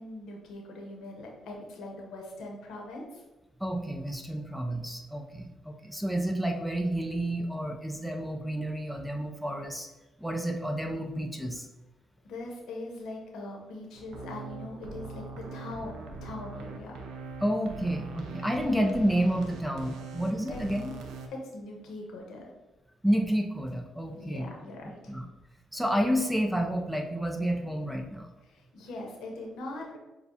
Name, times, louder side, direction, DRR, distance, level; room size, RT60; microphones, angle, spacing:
voice 1, 0.0-3.2 12.2-17.0 20.5-20.6 21.3-22.5 24.1-25.2 28.4-30.0, left 2 dB, 80° left, 0 dB, 0.9 m, -41 dB
voice 2, 3.6-9.9 10.2-11.7 17.4-20.9 23.0-24.5 25.1-25.2 25.7-28.3, equal, ahead, 2 dB, 0.5 m, -30 dB
sound 1, 13.9-21.3, right 3 dB, 80° right, 0.5 m, -42 dB
6.5 x 2.3 x 2.8 m, 1.1 s
cardioid pair, 90°, 0 cm